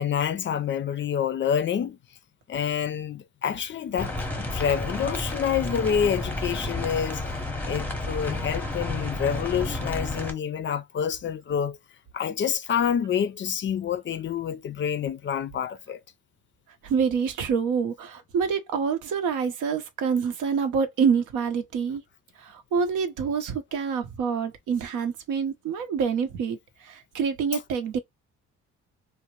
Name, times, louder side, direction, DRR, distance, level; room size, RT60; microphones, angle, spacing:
voice 1, 0.0-2.0 2.5-7.2 7.7-11.8 12.1-16.0, left 8 dB, 40° left, 0.4 m, -27 dB
sound 1, 4.0-10.3, left 2 dB, 5° left, 0.7 m, -31 dB
voice 2, 16.8-22.0 22.4-26.6 26.8-28.0, right 6 dB, 80° right, 0.7 m, -26 dB
2.6 x 2.1 x 3.0 m
cardioid pair, 90°, 30 cm